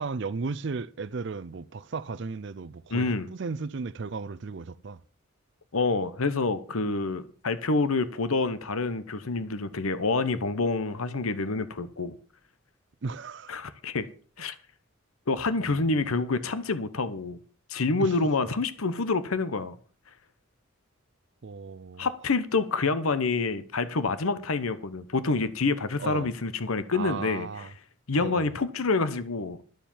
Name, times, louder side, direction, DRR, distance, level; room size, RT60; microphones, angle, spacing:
voice 1, 0.0-5.0 13.0-13.5 15.6-16.1 18.0-18.5 21.4-22.1 26.0-26.3 26.9-27.7 28.2-28.5, right 4 dB, 55° right, 0.5 m, -35 dB
voice 2, 2.9-3.3 5.7-12.1 13.5-14.1 14.4-14.5 15.3-17.4 17.7-19.8 22.0-27.5 28.1-29.6, left 3 dB, 85° left, 0.9 m, -27 dB
12.0 x 7.4 x 7.2 m
head